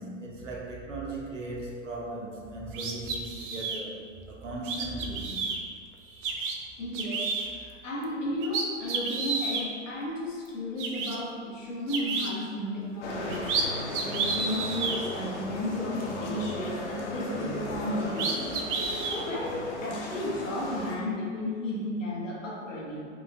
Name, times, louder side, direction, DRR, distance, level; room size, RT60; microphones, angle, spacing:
voice 1, 0.0-5.4 5.9-6.6 13.2-13.3, right 2 dB, 85° right, -3 dB, 1.1 m, -38 dB
sound 1, 2.7-3.8 4.6-5.6 6.2-6.5 6.9-7.5 8.0-8.1 8.4-9.7 10.5-10.6 10.8-11.2 11.9-12.3 13.1-13.6 13.9-15.0 17.7-17.8 18.2-19.2, right 4 dB, 45° right, 0.6 m, -31 dB
voice 2, 6.8-23.1, left 1 dB, 90° left, -4 dB, 1.2 m, -34 dB
sound 2, 13.0-20.9, left 1 dB, 65° left, 1.0 m, -36 dB
5.0 x 2.4 x 3.7 m, 2.1 s
hypercardioid pair, 110°, 37 cm